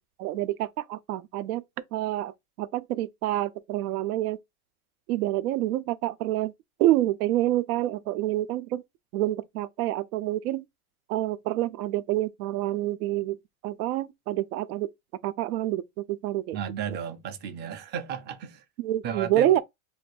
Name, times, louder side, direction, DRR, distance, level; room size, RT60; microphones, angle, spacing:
voice 1, 0.2-1.6 1.9-4.4 5.1-6.5 6.8-8.8 9.1-10.6 11.1-13.4 13.6-14.9 15.2-16.6 18.8-19.6, right 14 dB, 85° right, 0.6 m, -27 dB
voice 2, 16.5-18.6 19.0-19.6, right 8 dB, 25° right, 0.4 m, -34 dB
2.5 x 2.4 x 4.1 m
supercardioid pair, 130°, 44 cm